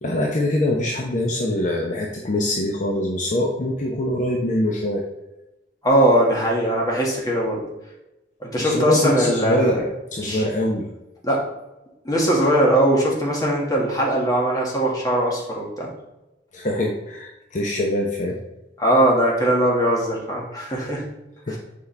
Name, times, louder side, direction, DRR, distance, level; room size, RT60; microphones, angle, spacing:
voice 1, 0.0-5.0 8.6-9.8 10.1-10.9 16.5-18.4 21.5-21.6, left 1 dB, 45° left, 0 dB, 0.8 m, -23 dB
voice 2, 5.8-7.6 8.4-9.8 10.2-10.4 11.2-11.4 12.1-15.9 18.8-21.0 21.5-21.6, right 1 dB, 20° left, -3 dB, 1.7 m, -20 dB
7.2 x 4.9 x 3.3 m, 0.96 s
head